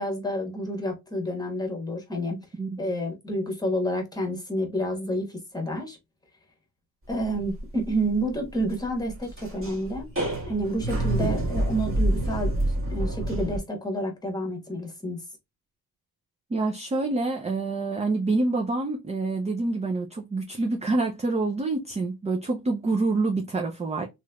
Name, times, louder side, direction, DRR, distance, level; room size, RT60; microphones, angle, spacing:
voice 1, 0.0-2.4 2.8-6.0 7.1-10.1 10.5-15.2, right 1 dB, 10° left, 1.3 m, -29 dB
voice 2, 2.3-2.7 16.5-24.1, right 3 dB, 20° right, 0.5 m, -27 dB
sound 1, 7.1-13.6, right 1 dB, 35° right, 1.6 m, -28 dB
3.1 x 3.0 x 2.3 m
cardioid pair, 105°, 38 cm